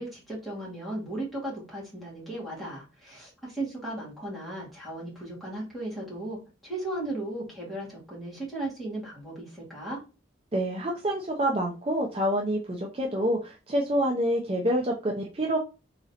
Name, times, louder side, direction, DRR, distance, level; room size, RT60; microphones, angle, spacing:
voice 1, 0.0-10.0, right 1 dB, ahead, -6 dB, 1.8 m, -36 dB
voice 2, 10.5-15.6, right 1 dB, 30° right, -1 dB, 0.5 m, -27 dB
3.7 x 3.1 x 2.8 m, 0.30 s
head